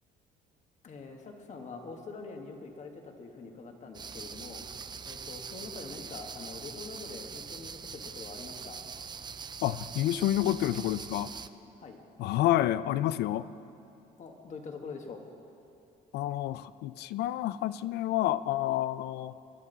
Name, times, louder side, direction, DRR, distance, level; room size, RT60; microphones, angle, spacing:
voice 1, 0.8-4.6 5.0-8.8 11.7-12.0 14.2-15.2, left 4 dB, 45° left, 3 dB, 1.7 m, -44 dB
sound 1, 3.9-11.5, right 6 dB, 25° right, 0.5 m, -43 dB
voice 2, 9.6-11.3 12.2-13.5 16.1-19.4, left 13 dB, 75° left, 16 dB, 0.4 m, -29 dB
20.5 x 11.5 x 4.1 m, 2.7 s
cardioid pair, 110°, 17 cm